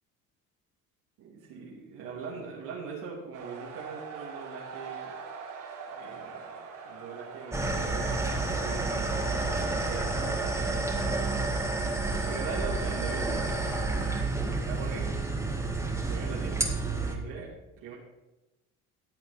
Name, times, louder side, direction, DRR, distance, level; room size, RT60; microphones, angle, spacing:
voice 1, 1.2-5.2 5.9-8.2 8.6-10.6 12.2-14.3 14.6-15.1 15.8-16.7 16.9-18.0, right 5 dB, 85° right, -7 dB, 2.9 m, -41 dB
sound 1, 3.3-17.1, right 5 dB, 65° right, 3.8 m, -45 dB
sound 2, 7.5-17.2, right 3 dB, 10° right, 2.0 m, -30 dB
14.0 x 8.8 x 4.3 m, 1.0 s
cardioid pair, 105°, 33 cm